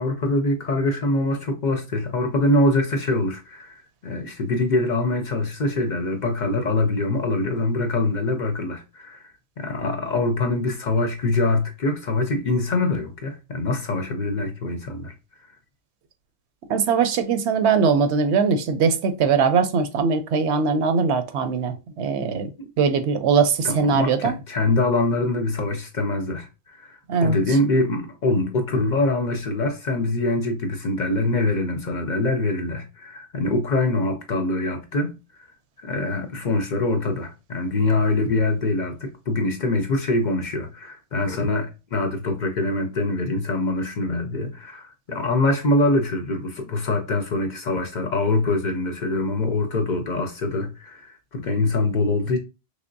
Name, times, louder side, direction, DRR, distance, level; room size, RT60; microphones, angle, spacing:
voice 1, 0.0-9.3 9.6-15.1 22.6-22.7 23.6-35.1 35.8-52.4, left 2 dB, 50° left, 0.6 m, -24 dB
voice 2, 16.7-22.5 22.8-24.3 27.1-27.4, right 5 dB, 75° right, 0.8 m, -21 dB
3.4 x 2.9 x 2.6 m
omnidirectional pair, 1.1 m